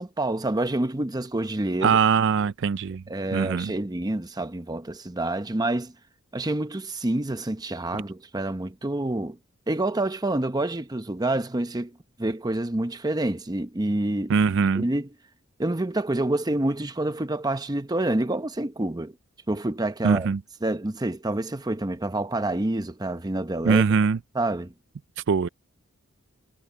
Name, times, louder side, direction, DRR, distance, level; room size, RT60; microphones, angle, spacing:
voice 1, 0.0-2.0 3.1-5.9 6.3-9.4 9.7-14.3 14.7-15.1 15.6-19.1 19.5-20.3 20.6-23.8 24.3-24.7, right 1 dB, 20° right, 0.8 m, -27 dB
voice 2, 1.8-3.0 3.3-3.7 14.3-14.8 20.0-20.4 23.6-24.2 25.3-25.5, right 5 dB, 60° right, 0.4 m, -21 dB
head